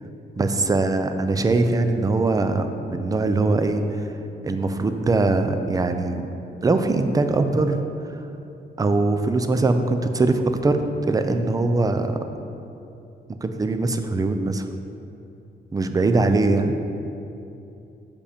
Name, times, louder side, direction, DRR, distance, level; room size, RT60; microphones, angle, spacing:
voice 1, 0.4-4.1 4.4-6.3 6.6-7.8 8.8-12.2 13.4-14.7 15.7-16.8, right 3 dB, 20° right, 8 dB, 0.4 m, -21 dB
6.9 x 5.1 x 5.0 m, 2.8 s
wide cardioid pair, 135°, 18 cm